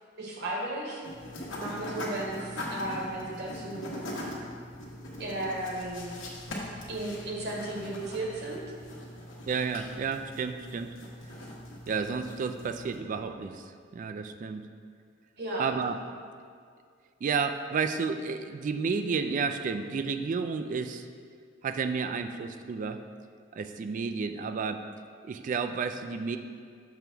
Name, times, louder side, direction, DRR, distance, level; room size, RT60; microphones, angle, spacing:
voice 1, 0.2-1.0 1.5-4.0 5.2-6.2 6.9-8.6 15.4-15.7, right 1 dB, 60° right, -2 dB, 1.4 m, -35 dB
sound 1, 1.0-13.0, left 1 dB, 85° left, 1.3 m, -41 dB
voice 2, 9.5-10.9 11.9-13.6 13.9-14.7 15.6-16.0 17.2-21.1 21.6-23.0 23.5-24.8 25.2-26.4, right 5 dB, 40° right, 8 dB, 0.3 m, -31 dB
6.9 x 3.4 x 6.0 m, 2.1 s
head